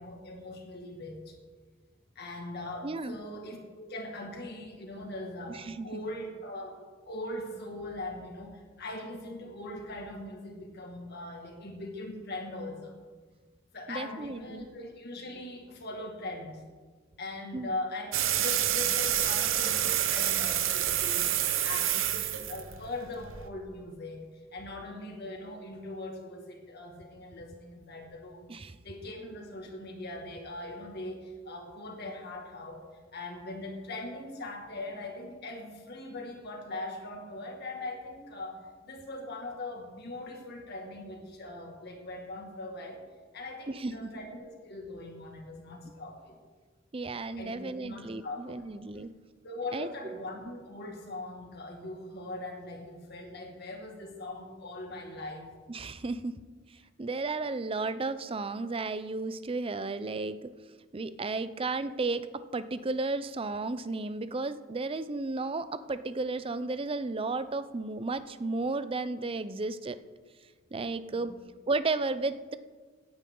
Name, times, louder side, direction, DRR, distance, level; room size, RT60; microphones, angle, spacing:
voice 1, 0.0-1.4 2.2-6.7 7.1-13.0 13.7-16.6 17.2-21.3 21.6-28.5 28.8-32.8 33.1-43.0 43.3-46.4 47.4-48.6 49.4-55.5 71.1-71.4, left 2 dB, 55° left, 2 dB, 2.1 m, -41 dB
voice 2, 2.8-3.2 5.5-6.0 13.9-14.7 17.5-17.7 28.5-28.8 43.7-44.1 46.9-49.1 49.7-50.2 55.7-56.4 57.0-60.5 60.9-70.0 70.7-71.3 71.7-72.6, right 3 dB, 30° right, 13 dB, 0.5 m, -33 dB
sound 1, 18.1-23.5, right 11 dB, 90° right, 0.9 m, -28 dB
17.0 x 9.2 x 3.9 m, 1.4 s
head